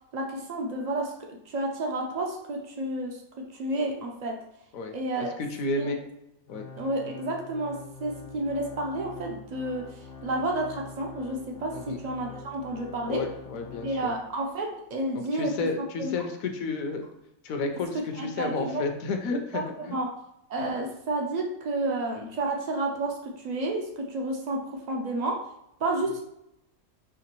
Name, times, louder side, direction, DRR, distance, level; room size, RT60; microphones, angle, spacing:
voice 1, 0.1-4.4 4.9-5.3 5.8-5.9 6.8-13.3 13.8-15.5 16.0-16.1 17.9-18.8 19.5-20.1 20.5-25.4 25.8-26.2, right 2 dB, 65° right, 1 dB, 0.4 m, -31 dB
voice 2, 4.7-6.0 6.5-6.6 11.7-12.0 13.1-14.1 15.1-17.0 17.4-20.0, left 3 dB, 70° left, 5 dB, 1.0 m, -32 dB
Organ, 6.5-14.5 14.9-15.0 15.7-15.8, left 4 dB, 90° left, 0.5 m, -45 dB
4.9 x 2.9 x 3.0 m, 0.82 s
omnidirectional pair, 1.5 m